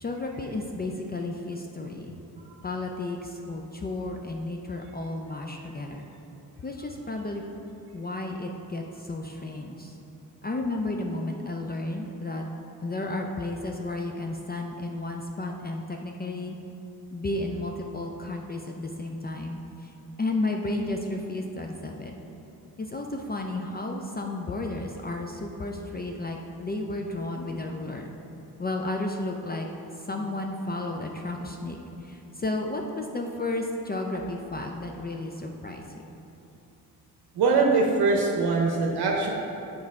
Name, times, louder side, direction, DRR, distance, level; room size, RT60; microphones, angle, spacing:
voice 1, 0.0-2.2 2.6-6.1 6.6-7.4 7.9-9.9 10.4-12.4 12.8-16.6 17.1-19.9 20.2-22.1 22.8-28.1 28.6-29.7 30.1-31.8 32.0-35.8, left 2 dB, 25° left, 2 dB, 0.4 m, -32 dB
voice 2, 37.4-39.3, right 4 dB, 75° right, 0 dB, 0.7 m, -22 dB
6.5 x 4.6 x 3.6 m, 2.8 s
cardioid pair, 80°, 39 cm